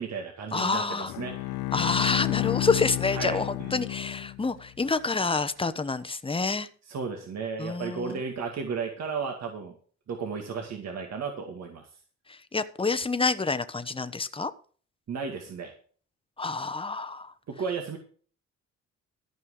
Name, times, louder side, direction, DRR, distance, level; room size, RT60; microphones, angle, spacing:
voice 1, 0.0-1.6 3.1-3.7 6.9-9.8 10.1-11.9 15.1-15.7 17.5-18.0, right 5 dB, 60° right, 3 dB, 2.3 m, -34 dB
voice 2, 0.5-1.1 1.7-6.7 7.6-8.2 12.3-14.5 16.4-17.3, left 4 dB, 20° left, 11 dB, 1.1 m, -28 dB
Bowed string instrument, 1.1-4.6, left 20 dB, 85° left, 0.5 m, -31 dB
14.0 x 5.6 x 6.5 m, 0.43 s
cardioid pair, 90°, 30 cm